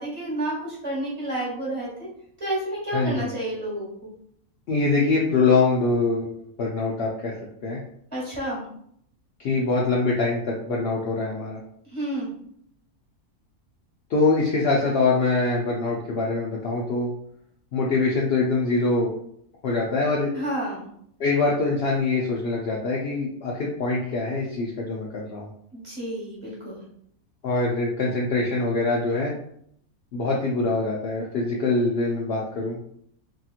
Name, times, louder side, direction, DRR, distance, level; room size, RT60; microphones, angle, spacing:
voice 1, 0.0-2.1 2.4-3.9 8.1-8.6 11.9-12.3 20.3-20.8 25.7-26.8, right 1 dB, 25° right, -5 dB, 1.0 m, -30 dB
voice 2, 2.9-3.3 4.7-6.3 6.6-7.3 7.6-7.8 9.4-11.6 14.1-17.1 17.7-19.1 19.6-20.3 21.2-25.5 27.4-29.3 30.1-32.8, left 3 dB, 80° left, -3 dB, 0.5 m, -24 dB
2.8 x 2.8 x 2.3 m, 0.69 s
omnidirectional pair, 1.6 m